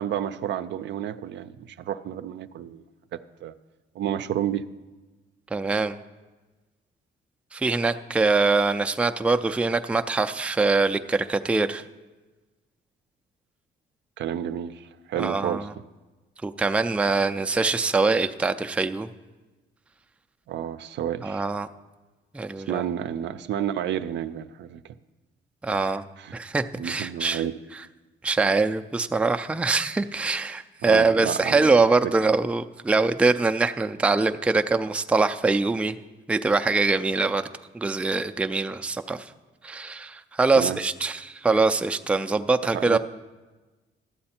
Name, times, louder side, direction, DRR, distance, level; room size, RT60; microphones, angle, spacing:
voice 1, 0.0-2.8 3.1-3.5 4.0-4.6 14.2-15.7 20.5-21.4 22.7-24.9 25.8-26.4 26.8-27.6 30.9-31.8 40.5-40.8 42.7-43.0, right 10 dB, 65° right, 11 dB, 0.5 m, -31 dB
voice 2, 5.5-6.0 7.5-11.8 15.2-15.7 16.4-19.1 21.2-21.7 22.3-22.8 25.6-26.0 26.3-27.4 27.7-27.8 28.2-36.0 36.3-37.4 37.7-39.3 39.6-43.0, right 3 dB, 5° right, 7 dB, 0.4 m, -23 dB
13.0 x 7.8 x 4.3 m, 1.2 s
cardioid pair, 90°, 20 cm